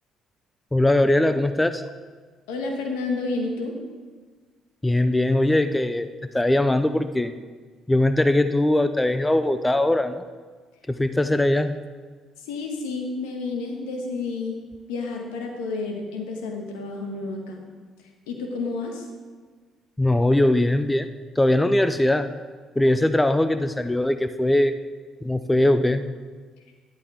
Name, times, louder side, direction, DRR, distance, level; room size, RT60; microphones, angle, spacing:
voice 1, 0.7-1.8 4.8-6.1 6.3-7.3 7.9-10.2 10.9-11.8 20.0-21.1 21.4-22.3 22.8-24.8 25.2-26.0, left 1 dB, 10° left, 11 dB, 0.6 m, -21 dB
voice 2, 2.5-3.8 12.4-14.6 14.9-17.6 18.3-19.1, left 3 dB, 85° left, 2 dB, 1.6 m, -30 dB
11.5 x 11.0 x 3.6 m, 1.5 s
hypercardioid pair, 55°, 0 cm